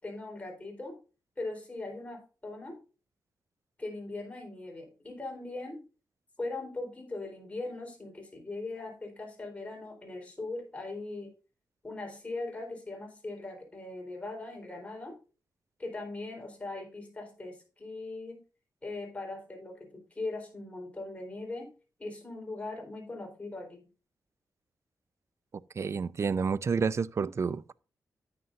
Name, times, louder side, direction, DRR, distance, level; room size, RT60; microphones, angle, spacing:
voice 1, 0.0-1.0 1.4-2.8 3.8-5.8 6.4-11.3 11.8-15.2 15.8-18.4 18.8-21.7 22.0-23.8, left 2 dB, 20° left, 3.9 m, -40 dB
voice 2, 25.8-27.7, right 5 dB, 45° right, 0.4 m, -29 dB
9.5 x 9.2 x 2.6 m
wide cardioid pair, 105°, 7 cm